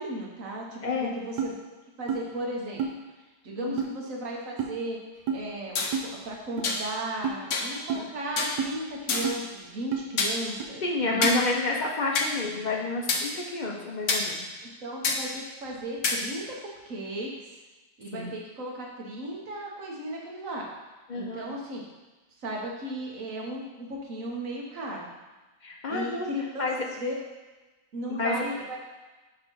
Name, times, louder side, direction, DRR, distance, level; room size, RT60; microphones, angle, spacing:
voice 1, 0.0-1.6 2.0-2.9 3.4-5.0 5.3-11.4 14.6-16.6 16.9-17.3 18.0-20.7 21.1-21.8 22.4-25.1 25.9-27.2 27.9-28.8, right 1 dB, 50° right, -2 dB, 1.6 m, -35 dB
sound 1, 1.4-1.5 2.1-2.2 2.8-2.9 3.8-3.9 4.6-4.7 5.3-5.4 5.9-6.1 6.6-6.7 7.2-7.4 7.9-8.0 8.6-8.7 9.2-9.4 9.9-10.1 10.6-10.7 11.2-11.3, right 6 dB, 80° right, 1.5 m, -29 dB
sound 2, 5.8-5.9 6.6-6.8 7.5-7.7 8.4-8.6 9.1-9.4 10.2-10.4 11.2-11.4 12.1-12.3 13.1-13.2 14.1-14.2 15.0-15.2 16.0-16.2, left 4 dB, 55° left, 0.9 m, -26 dB
voice 2, 10.8-14.4 18.1-18.3 21.1-21.5 25.6-26.3 26.6-26.8 28.1-28.4, left 3 dB, 85° left, -1 dB, 0.4 m, -29 dB
8.2 x 3.3 x 5.5 m, 1.2 s
omnidirectional pair, 1.9 m